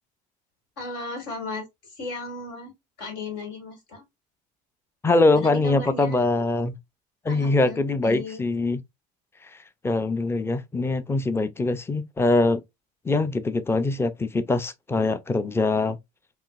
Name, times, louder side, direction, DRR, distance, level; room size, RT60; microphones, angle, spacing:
voice 1, 0.8-1.6 2.0-2.7 3.0-4.0 5.3-6.2 7.3-7.8 8.0-8.4, left 3 dB, 80° left, 2.2 m, -35 dB
voice 2, 5.0-6.8 7.2-8.8 9.5-9.6 9.8-12.6 13.0-16.0, left 2 dB, 10° left, 0.5 m, -23 dB
5.6 x 2.6 x 2.4 m
supercardioid pair, 105°, 21 cm